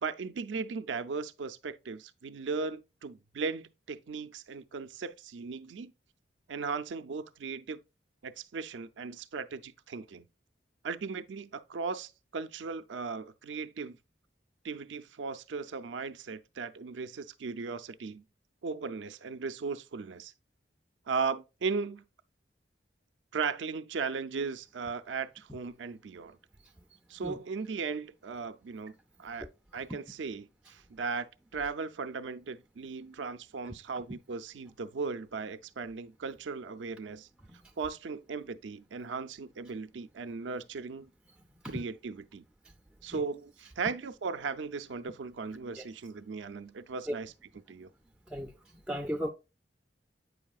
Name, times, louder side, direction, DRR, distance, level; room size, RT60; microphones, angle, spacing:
voice 1, 0.0-5.9 6.5-7.8 8.2-10.3 10.8-14.0 14.6-18.2 18.6-20.3 21.1-22.0 23.3-26.4 27.1-29.5 29.7-37.3 37.8-41.1 41.6-42.4 43.0-47.3 47.7-47.9, right 5 dB, 90° right, 0.5 m, -37 dB
voice 2, 48.9-49.3, equal, 5° right, 0.3 m, -35 dB
8.0 x 5.4 x 2.3 m
head